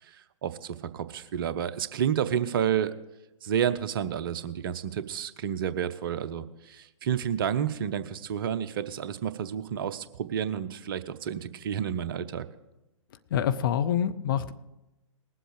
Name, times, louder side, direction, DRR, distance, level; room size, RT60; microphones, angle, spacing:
voice 1, 0.0-2.9 3.4-12.4, right 9 dB, 40° right, 12 dB, 0.6 m, -30 dB
voice 2, 13.3-14.5, left 9 dB, 40° left, 11 dB, 0.6 m, -26 dB
19.5 x 7.8 x 4.9 m, 0.97 s
figure-of-eight pair, 120°, 17 cm